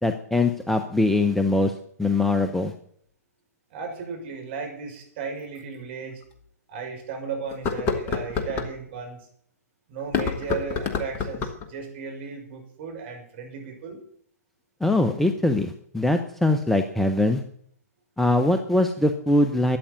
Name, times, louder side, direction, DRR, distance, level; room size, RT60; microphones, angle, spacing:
voice 1, 0.0-1.7 2.0-2.7 14.8-17.4 18.2-19.8, left 2 dB, 5° left, 8 dB, 0.9 m, -22 dB
voice 2, 3.7-6.2 6.7-9.2 9.9-14.0, right 5 dB, 40° right, 3 dB, 6.3 m, -35 dB
sound 1, 4.3-4.4 5.6-5.7 6.2-6.3 7.5-8.7 10.0-11.7, left 5 dB, 25° left, 1.8 m, -28 dB
13.0 x 8.8 x 9.3 m, 0.63 s
figure-of-eight pair, 115°, 9 cm